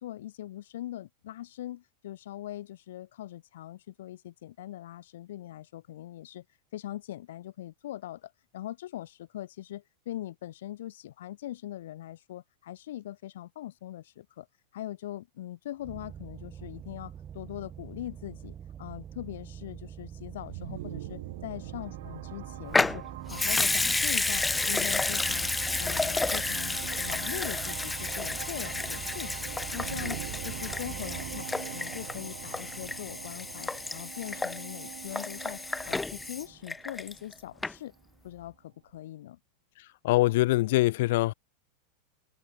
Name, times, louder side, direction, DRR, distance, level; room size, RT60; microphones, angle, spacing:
voice 1, 0.0-6.4 6.7-14.5 14.7-31.5 31.7-37.9 38.2-39.4, left 13 dB, 75° left, 4.5 m, -41 dB
sound 1, 15.8-31.4, right 9 dB, 20° right, 1.9 m, -45 dB
sound 2, 20.2-37.9, right 15 dB, 65° right, 2.4 m, -43 dB
Water tap faucet / Sink (filling or washing) / Liquid, 22.7-37.3 37.6-37.7, left 3 dB, 5° left, 0.7 m, -31 dB
voice 2, 40.0-41.3, left 18 dB, 55° left, 0.3 m, -23 dB
supercardioid pair, 170°, 0 cm